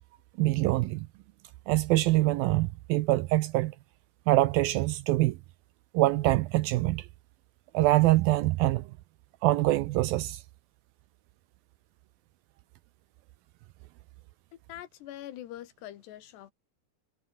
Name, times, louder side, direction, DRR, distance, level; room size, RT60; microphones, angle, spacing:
voice 1, 0.4-1.1 1.7-3.8 4.3-5.4 5.9-7.1 7.7-8.9 9.4-10.4, right 17 dB, 80° right, 2.1 m, -24 dB
voice 2, 14.5-16.5, left 13 dB, 80° left, 3.6 m, -44 dB
omnidirectional pair, 4.9 m